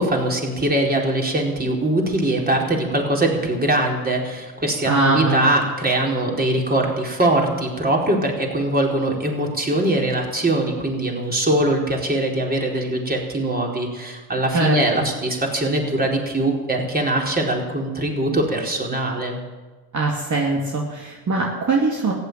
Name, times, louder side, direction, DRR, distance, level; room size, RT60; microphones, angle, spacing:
voice 1, 0.0-19.4, right 1 dB, 20° right, 0 dB, 4.4 m, -22 dB
voice 2, 4.8-5.5 14.5-15.0 19.9-22.1, right 3 dB, 45° right, -2 dB, 2.7 m, -21 dB
14.5 x 9.7 x 9.5 m, 1.3 s
hypercardioid pair, 60°, 43 cm